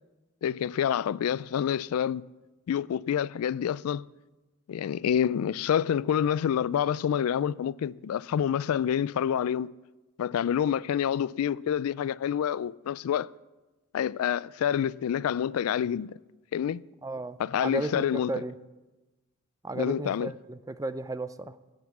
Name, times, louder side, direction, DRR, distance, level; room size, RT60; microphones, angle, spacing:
voice 1, 0.4-2.2 2.7-4.1 4.7-9.7 10.2-13.3 13.9-16.2 16.5-16.9 17.4-18.4 19.7-20.3, left 9 dB, 85° left, 0.3 m, -27 dB
voice 2, 17.0-18.5 19.6-21.6, right 2 dB, 15° right, 0.4 m, -34 dB
14.5 x 8.0 x 7.1 m
head